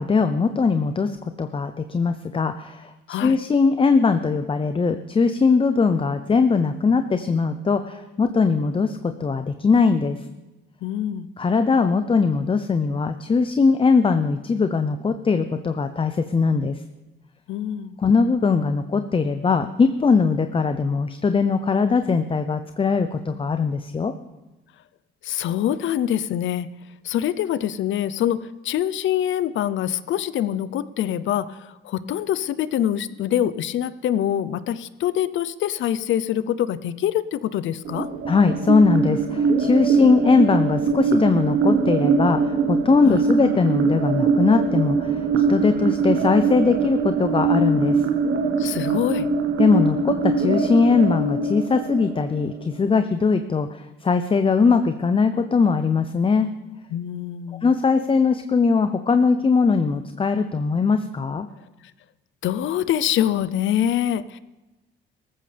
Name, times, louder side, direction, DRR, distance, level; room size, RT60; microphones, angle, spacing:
voice 1, 0.0-2.9 3.2-10.2 11.4-16.8 18.0-24.1 38.2-48.0 49.6-56.5 57.6-61.5, left 4 dB, 25° left, 9 dB, 0.6 m, -20 dB
voice 2, 10.8-11.3 17.5-18.0 25.2-26.7 27.0-38.1 43.0-43.2 48.6-49.3 56.9-57.7 62.4-64.4, left 11 dB, 75° left, 15 dB, 0.6 m, -25 dB
sound 1, 37.8-52.8, right 4 dB, 85° right, 1.4 m, -22 dB
17.5 x 14.0 x 3.4 m, 1.0 s
cardioid pair, 90°, 20 cm